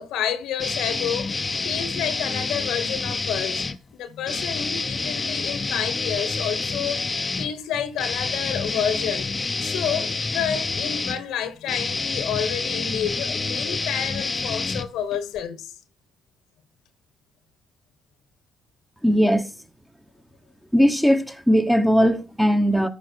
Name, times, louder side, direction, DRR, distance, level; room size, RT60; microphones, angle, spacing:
voice 1, 0.0-1.3 1.6-3.7 3.9-9.3 9.6-15.7, left 9 dB, 80° left, 1.1 m, -29 dB
sound 1, 0.6-3.8 4.2-15.4, left 3 dB, 30° left, 0.7 m, -28 dB
voice 2, 19.0-19.5 20.7-22.9, equal, 5° right, 1.2 m, -19 dB
14.0 x 4.9 x 4.5 m
supercardioid pair, 70°, 0 cm